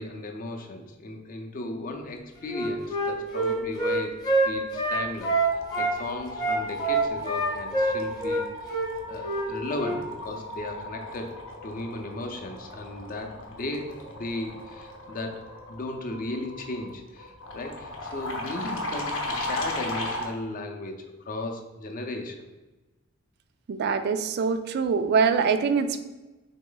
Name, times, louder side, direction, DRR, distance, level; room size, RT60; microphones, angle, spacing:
voice 1, 0.0-4.2 4.5-5.4 5.8-8.8 9.1-11.3 11.6-15.4 15.7-22.5, left 2 dB, 45° left, 3 dB, 0.5 m, -36 dB
Wind instrument woodwind instrument, 2.5-5.9 6.4-8.4 8.7-8.9 9.2-9.5 9.7-10.0, right 2 dB, 20° left, 0.8 m, -25 dB
sound 1, 4.5-4.8 5.1-20.3, left 1 dB, 80° left, 0.7 m, -37 dB
voice 2, 23.7-26.0, right 5 dB, 55° right, 9 dB, 0.3 m, -24 dB
3.6 x 3.0 x 3.8 m, 1.1 s
head